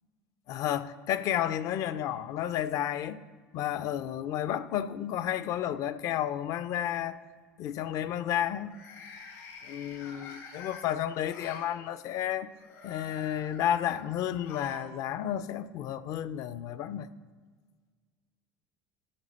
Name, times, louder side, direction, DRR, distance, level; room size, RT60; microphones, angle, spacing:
voice 1, 0.5-3.2 3.5-7.2 7.6-8.8 9.6-12.5 12.8-17.1, left 11 dB, 60° left, 0.5 m, -32 dB
sound 1, 6.4-6.5 8.6-11.7 12.5-14.9 15.2-15.3 16.4-16.5, left 5 dB, 80° left, 1.8 m, -48 dB
12.5 x 6.1 x 4.2 m
supercardioid pair, 100°, 6 cm